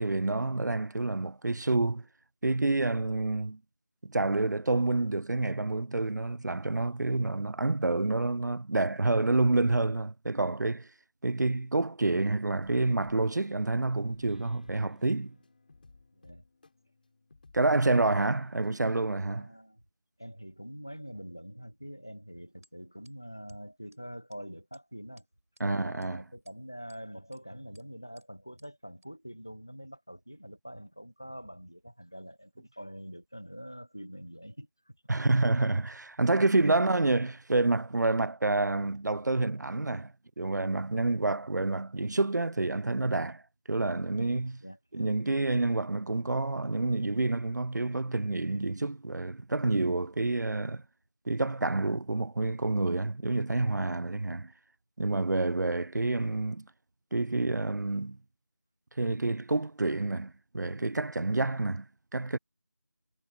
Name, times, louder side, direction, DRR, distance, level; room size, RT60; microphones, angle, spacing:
voice 1, 0.0-2.0 2.4-3.6 4.0-10.9 11.2-15.4 17.5-19.5 25.6-26.2 35.1-40.1 40.4-43.4 43.7-44.6 44.9-50.8 51.3-54.5 55.0-56.6 57.1-58.2 59.0-61.9 62.1-62.4, right 2 dB, 65° right, 0.5 m, -28 dB
sound 1, 12.6-18.7, left 3 dB, 30° left, 3.1 m, -59 dB
voice 2, 16.1-16.4 19.3-19.8 20.2-25.3 25.6-35.0 36.6-36.8 44.6-44.8, equal, 10° left, 0.4 m, -45 dB
sound 2, 22.6-22.7 23.0-23.1 23.5-23.6 23.9-24.0 24.3-24.4 24.7-24.8 25.2-25.6 26.0-26.1 26.5-27.0 27.3-27.4 27.7-27.8 28.2-28.3 28.6-28.7 29.0-29.1, right 2 dB, 50° right, 4.2 m, -63 dB
figure-of-eight pair, 170°, 10 cm